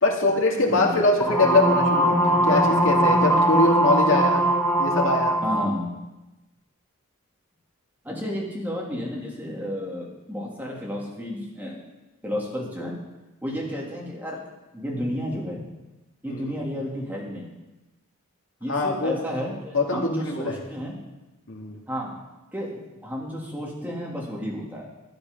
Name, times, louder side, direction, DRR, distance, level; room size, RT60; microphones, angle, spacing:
voice 1, 0.0-4.4 4.8-5.4 16.3-16.5 18.7-19.2 19.7-20.6 21.5-21.8, left 2 dB, 60° left, 0 dB, 2.3 m, -23 dB
voice 2, 0.5-1.0 5.4-5.9 8.0-11.8 12.2-12.9 13.4-14.4 14.7-15.7 16.2-17.5 18.6-21.0 21.9-22.2 22.5-24.9, equal, 10° right, -3 dB, 3.0 m, -32 dB
sound 1, 1.2-5.7, right 1 dB, 10° left, 1.9 m, -20 dB
12.0 x 11.5 x 5.4 m, 1.0 s
head